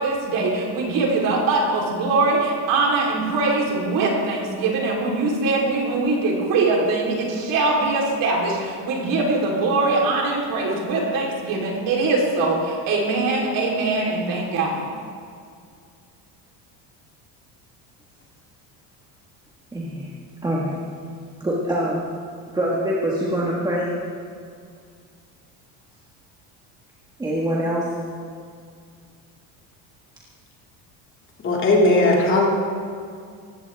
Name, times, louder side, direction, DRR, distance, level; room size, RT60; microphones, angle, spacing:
voice 1, 0.0-14.8, right 3 dB, 50° right, 3.7 m, -22 dB
voice 2, 19.7-20.1 20.4-20.8 21.4-22.0 22.5-23.9 27.2-27.9, equal, 10° right, 1.6 m, -24 dB
voice 3, 31.4-32.5, left 2 dB, 30° left, 2.4 m, -17 dB
19.0 x 16.0 x 3.5 m
cardioid pair, 165°, 41 cm